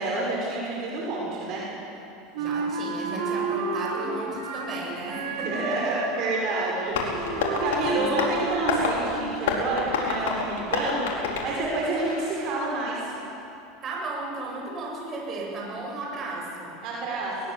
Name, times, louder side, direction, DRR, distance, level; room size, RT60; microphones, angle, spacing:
voice 1, 0.0-1.6 5.4-13.1 16.8-17.3, right 2 dB, 50° right, -4 dB, 6.1 m, -29 dB
Wind instrument woodwind instrument, 2.3-4.8 5.1-9.2, right 4 dB, 80° right, 3.8 m, -31 dB
voice 2, 2.4-5.8 6.9-7.1 7.7-8.3 13.8-16.8, right 2 dB, 30° right, -2 dB, 7.6 m, -35 dB
Tap, 6.9-12.4, left 5 dB, 85° left, 4.8 m, -29 dB
22.0 x 21.0 x 8.3 m, 2.9 s
supercardioid pair, 130°, 0 cm